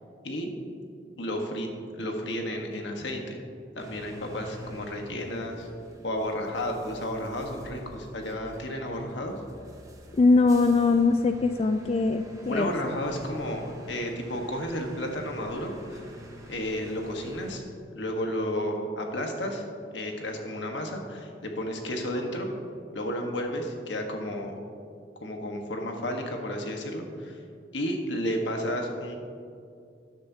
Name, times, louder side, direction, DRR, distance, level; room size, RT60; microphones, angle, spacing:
voice 1, 1.2-1.7 2.0-3.4 3.8-5.7 6.0-9.3 12.5-16.0 16.5-17.6 17.9-19.6 19.9-22.5 22.9-24.5 25.2-27.4 27.7-29.2, equal, 80° left, 2 dB, 1.3 m, -32 dB
sound 1, 3.8-17.6, equal, 20° right, 0.9 m, -47 dB
voice 2, 10.1-12.7, left 3 dB, 35° left, 7 dB, 0.3 m, -22 dB
13.0 x 9.7 x 2.8 m, 2.4 s
head